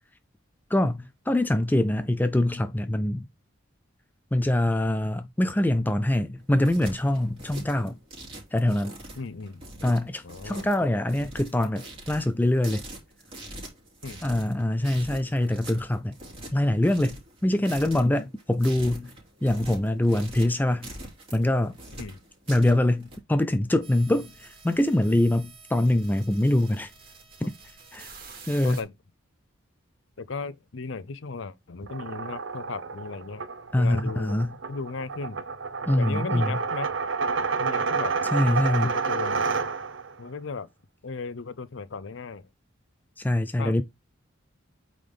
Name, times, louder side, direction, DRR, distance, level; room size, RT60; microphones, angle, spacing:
voice 1, 0.7-3.3 4.3-8.0 8.5-8.9 9.8-12.8 14.2-16.2 16.5-19.1 19.4-20.9 21.3-21.8 22.5-26.9 27.4-27.5 27.9-28.1 28.5-28.8 33.7-34.6 35.9-36.6 38.3-39.0 43.2-43.8, left 1 dB, 10° left, 0.4 m, -24 dB
sound 1, 6.4-23.2, right 1 dB, 30° right, 2.9 m, -43 dB
voice 2, 9.2-9.6 10.2-10.7 14.0-14.2 22.0-22.2 28.6-28.9 30.2-33.4 33.8-34.4 34.7-35.4 35.9-36.9 37.6-38.1 38.5-39.4 40.2-40.7 41.0-42.5 43.6-43.8, left 4 dB, 65° left, 0.6 m, -36 dB
sound 2, 23.8-28.8, right 5 dB, 45° right, 2.3 m, -48 dB
sound 3, 31.8-40.1, right 5 dB, 65° right, 0.7 m, -29 dB
8.5 x 3.9 x 3.5 m
head